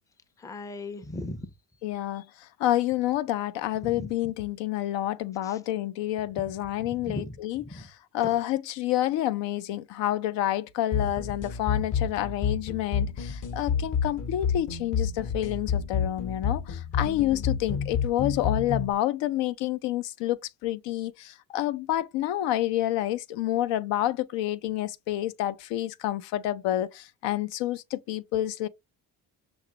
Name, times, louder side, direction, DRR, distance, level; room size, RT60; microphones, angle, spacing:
voice 1, 0.4-1.5 3.8-4.1 5.4-5.6 6.9-7.9 8.3-8.4, left 2 dB, 10° left, 0.4 m, -38 dB
voice 2, 1.8-7.9 8.1-28.7, left 13 dB, 80° left, 0.5 m, -29 dB
sound 1, 10.9-18.9, left 7 dB, 45° left, 0.8 m, -29 dB
5.9 x 2.3 x 2.8 m
supercardioid pair, 70°, 43 cm